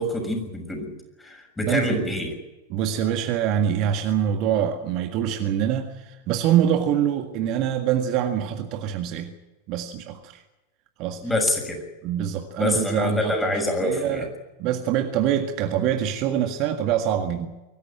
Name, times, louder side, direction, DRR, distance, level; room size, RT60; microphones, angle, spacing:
voice 1, 0.0-2.3 11.2-11.8 12.6-14.3, left 1 dB, 10° left, 6.7 m, -26 dB
voice 2, 1.6-2.1 2.7-9.3 9.7-10.4 11.0-11.2 12.0-13.5 13.8-14.3 14.6-17.5, right 10 dB, 40° right, 1.8 m, -24 dB
24.0 x 15.0 x 8.9 m
figure-of-eight pair, 90°, 0 cm